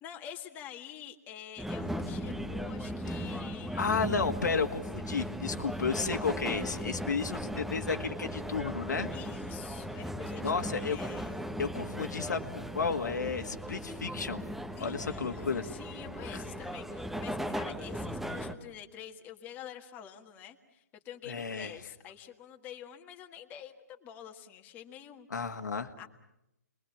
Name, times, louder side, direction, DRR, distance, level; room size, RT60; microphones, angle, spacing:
voice 1, 0.0-3.9 9.1-11.4 14.7-25.5 26.0-26.1, left 10 dB, 20° left, 3 dB, 1.7 m, -47 dB
sound 1, 1.6-18.5, equal, ahead, 1.1 m, -37 dB
voice 2, 3.8-9.1 10.4-11.1 11.6-14.4 14.8-15.6 16.3-16.4 21.3-21.8 25.3-25.9, left 5 dB, 90° left, 5 dB, 1.9 m, -32 dB
29.0 x 22.0 x 7.3 m, 0.87 s
hypercardioid pair, 155°, 9 cm